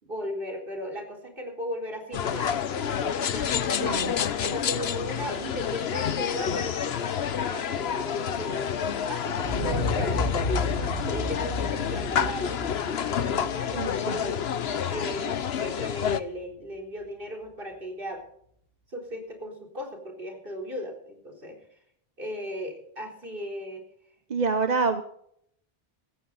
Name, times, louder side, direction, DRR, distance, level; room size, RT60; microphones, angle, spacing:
voice 1, 0.0-8.7 9.1-14.4 14.9-18.2 18.9-21.6 22.2-23.9, equal, 60° right, 1 dB, 4.3 m, -37 dB
sound 1, 2.1-16.2, left 8 dB, 90° left, 1.1 m, -29 dB
voice 2, 3.8-4.1 13.8-14.2 24.3-25.0, right 4 dB, 45° right, 9 dB, 1.0 m, -26 dB
Explosion, 9.4-15.4 15.8-15.9, left 2 dB, 70° left, 3.3 m, -32 dB
17.0 x 14.5 x 4.1 m, 0.68 s
omnidirectional pair, 1.0 m